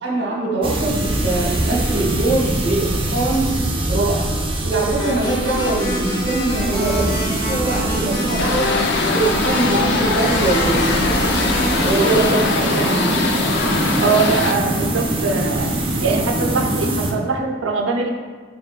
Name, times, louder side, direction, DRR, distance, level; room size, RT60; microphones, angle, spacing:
voice 1, 0.0-3.5 3.9-4.3 4.6-8.7 9.1-11.3 11.8-13.3, right 2 dB, 65° right, -3 dB, 0.9 m, -22 dB
sound 1, 0.6-17.1, right 1 dB, 30° right, 0.4 m, -23 dB
sound 2, 5.0-12.3, left 1 dB, 20° left, 0.8 m, -28 dB
sound 3, 8.4-14.5, left 4 dB, 65° left, 0.3 m, -22 dB
voice 2, 14.0-15.7 16.0-18.1, right 4 dB, 85° right, 4 dB, 0.4 m, -22 dB
4.2 x 3.7 x 2.3 m, 1.5 s
head